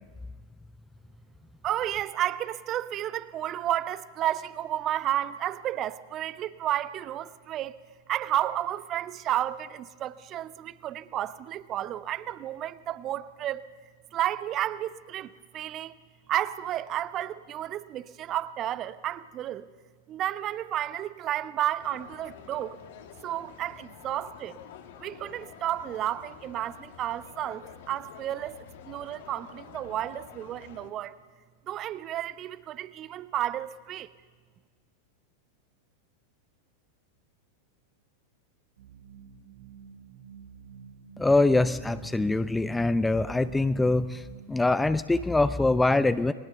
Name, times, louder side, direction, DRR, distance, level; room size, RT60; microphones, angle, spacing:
voice 1, 1.6-7.8 8.1-13.7 14.1-15.9 16.3-19.7 20.1-22.8 23.2-24.6 25.0-28.6 28.9-31.1 31.7-34.1, right 12 dB, 35° right, 1.0 m, -32 dB
sound 1, 21.8-30.9, left 8 dB, 55° left, 2.4 m, -49 dB
sound 2, 38.8-44.8, right 7 dB, 70° right, 2.0 m, -49 dB
voice 2, 41.2-46.3, left 2 dB, 10° left, 0.7 m, -24 dB
29.5 x 22.0 x 6.9 m
figure-of-eight pair, 90°, 0 cm